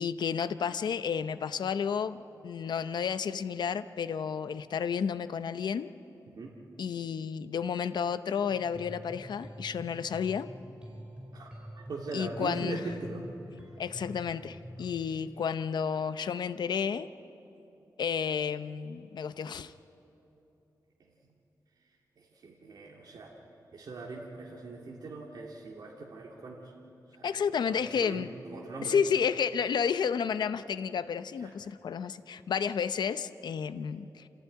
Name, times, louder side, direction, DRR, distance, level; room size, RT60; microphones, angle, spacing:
voice 1, 0.0-5.9 6.8-10.5 12.1-12.8 13.8-17.1 18.0-19.7 27.2-28.3 28.8-34.3, left 7 dB, 80° left, 12 dB, 0.7 m, -31 dB
sound 1, 8.5-14.9, equal, 15° right, 4.5 m, -46 dB
voice 2, 11.3-13.2 22.2-23.3 23.7-26.7 27.1-27.3 27.7-29.0 31.4-31.5, right 3 dB, 65° right, -2 dB, 2.2 m, -41 dB
28.0 x 15.0 x 9.4 m, 3.0 s
wide cardioid pair, 155°, 7 cm